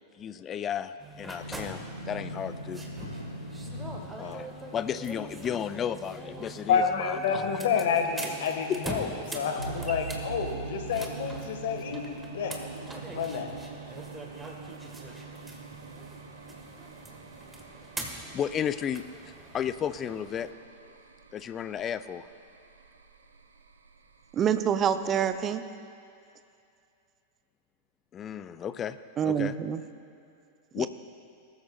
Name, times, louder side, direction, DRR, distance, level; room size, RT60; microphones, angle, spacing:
voice 1, 0.2-2.8 4.2-7.6 8.7-8.8 18.3-19.0 19.5-20.5 21.3-22.3 28.1-29.0 29.2-29.5 30.7-30.9, left 9 dB, 25° left, 13 dB, 0.4 m, -33 dB
sound 1, 1.0-20.5, right 2 dB, 10° right, 1.3 m, -43 dB
sound 2, 1.4-5.3, left 1 dB, 85° left, 0.8 m, -41 dB
voice 2, 6.7-12.6 13.1-13.5, left 6 dB, 55° left, 5 dB, 1.3 m, -29 dB
sound 3, 9.6-25.3, right 4 dB, 75° right, 0.6 m, -44 dB
voice 3, 24.3-25.6 29.2-29.8 30.8-30.9, right 8 dB, 25° right, 10 dB, 0.5 m, -26 dB
19.5 x 13.0 x 2.2 m, 2.5 s
figure-of-eight pair, 90°, 0 cm